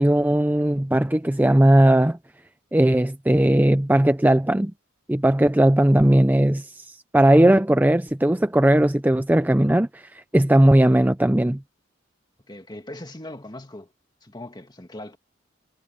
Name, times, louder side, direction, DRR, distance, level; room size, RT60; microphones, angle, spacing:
voice 1, 0.0-2.2 2.7-4.7 5.1-6.8 7.1-11.6, right 1 dB, 10° right, 0.5 m, -18 dB
voice 2, 12.5-13.9 14.2-15.2, left 1 dB, 20° left, 2.0 m, -39 dB
head